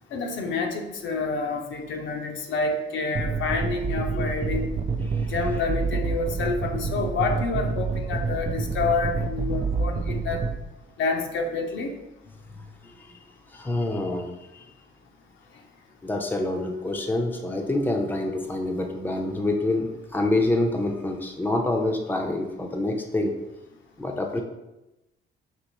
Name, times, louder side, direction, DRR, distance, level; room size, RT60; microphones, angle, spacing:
voice 1, 0.1-4.7 5.3-10.4 11.0-11.9, left 4 dB, 70° left, 3 dB, 0.6 m, -28 dB
sound 1, 3.1-10.5, right 4 dB, 35° right, 0.4 m, -28 dB
voice 2, 5.0-5.3 12.5-14.7 16.0-23.3 24.0-24.4, left 2 dB, 10° left, 2 dB, 0.6 m, -27 dB
5.4 x 3.0 x 3.0 m, 0.96 s
cardioid pair, 90°, 20 cm